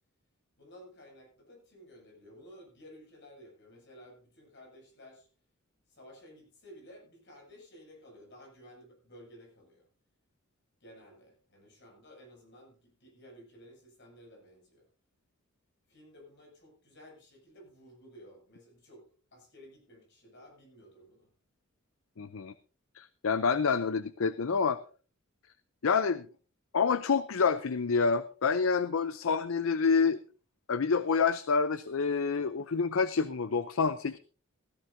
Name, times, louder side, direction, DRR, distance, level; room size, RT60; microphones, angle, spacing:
voice 1, 0.6-5.3 5.9-9.9 10.8-14.8 15.9-19.0 19.3-21.3, equal, 60° left, 1 dB, 6.9 m, -54 dB
voice 2, 22.2-22.5 22.9-24.8 25.8-26.3 26.7-30.2 30.7-34.2, left 5 dB, 75° left, 13 dB, 0.6 m, -28 dB
16.5 x 14.0 x 2.7 m, 0.38 s
head